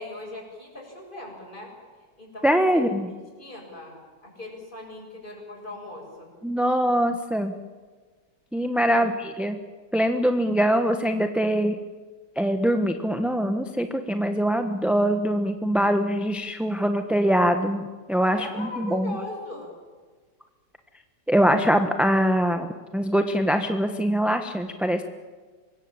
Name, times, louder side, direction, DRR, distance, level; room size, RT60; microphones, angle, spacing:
voice 1, 0.0-1.7 2.2-2.9 3.4-4.0 4.2-6.3 8.9-9.1 18.3-19.7, left 2 dB, 25° left, 0 dB, 7.5 m, -39 dB
voice 2, 2.4-3.1 6.4-7.5 8.5-9.6 9.9-11.8 12.4-17.8 18.1-19.2 21.3-25.0, equal, ahead, 6 dB, 1.0 m, -23 dB
25.5 x 21.5 x 8.9 m, 1.5 s
omnidirectional pair, 1.9 m